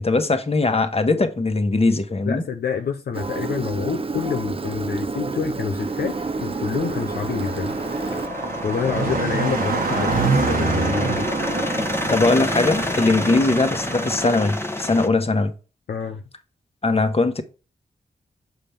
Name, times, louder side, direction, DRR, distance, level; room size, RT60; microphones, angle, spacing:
voice 1, 0.0-2.4 12.1-15.5 16.8-17.4, left 3 dB, 35° left, 1.4 m, -20 dB
voice 2, 2.3-7.8 8.6-11.3 13.3-13.4 15.9-16.2, left 6 dB, 75° left, 0.7 m, -27 dB
Engine, 3.1-8.3, right 4 dB, 35° right, 0.6 m, -29 dB
Car passing by, 5.8-14.3, right 4 dB, 60° right, 1.3 m, -27 dB
sound 1, 6.0-15.1, left 1 dB, 15° left, 1.2 m, -29 dB
7.0 x 5.6 x 3.4 m
supercardioid pair, 40°, 16 cm